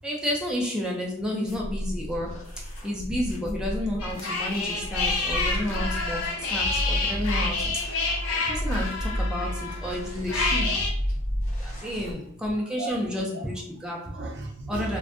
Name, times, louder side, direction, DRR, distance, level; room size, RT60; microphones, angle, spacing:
voice 1, 0.0-2.4 2.8-8.0 8.5-10.8 11.6-14.2 14.7-15.0, left 1 dB, 5° right, -3 dB, 0.4 m, -31 dB
sound 1, 1.5-12.1, equal, 35° left, 0.8 m, -32 dB
sound 2, 4.0-10.9, left 3 dB, 75° left, 0.5 m, -29 dB
voice 2, 11.1-13.0 13.3-13.4 14.0-15.0, right 2 dB, 55° right, 1 dB, 0.5 m, -38 dB
2.5 x 2.1 x 2.4 m, 0.65 s
head